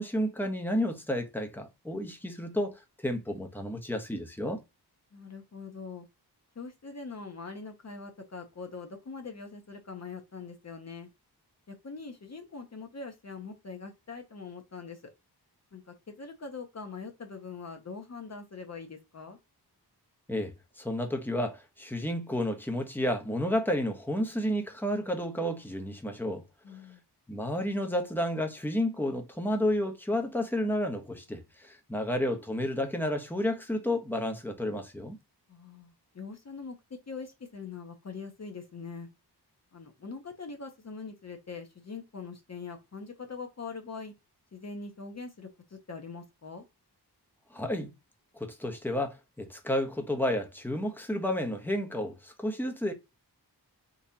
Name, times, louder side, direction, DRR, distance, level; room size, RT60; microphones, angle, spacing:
voice 1, 0.0-4.6 20.3-26.4 27.3-35.2 47.5-47.9 48.4-52.9, left 1 dB, 5° left, 0.7 m, -31 dB
voice 2, 5.1-6.1 6.6-11.1 11.7-15.0 15.7-19.4 26.6-27.0 35.5-39.1 39.7-44.1 44.5-46.7, left 4 dB, 40° left, 0.7 m, -43 dB
3.9 x 2.8 x 2.7 m
wide cardioid pair, 100°, 41 cm